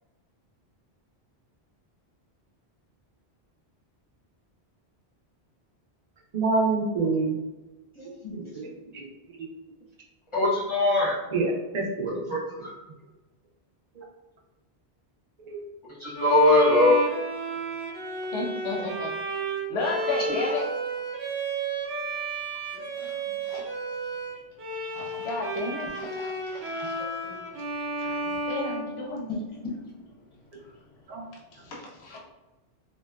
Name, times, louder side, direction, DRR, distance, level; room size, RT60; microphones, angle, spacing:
voice 1, 6.3-7.4 8.3-9.1 9.4-9.5 11.3-12.3 14.0-14.1 15.5-15.6 27.0-27.4 31.1-31.3, right 3 dB, 55° right, -1 dB, 0.5 m, -28 dB
voice 2, 8.0-8.6 10.3-11.2 12.3-12.7 16.0-17.0, left 2 dB, 35° left, -6 dB, 0.6 m, -22 dB
Bowed string instrument, 16.1-29.6, right 2 dB, 80° right, 0.9 m, -32 dB
voice 3, 18.3-19.1 19.7-20.6 22.7-23.1 23.4-23.6 24.9-27.0 28.0-29.6 31.5-32.2, left 3 dB, 75° left, -2 dB, 0.8 m, -33 dB
2.9 x 2.1 x 2.2 m, 1.1 s
omnidirectional pair, 1.1 m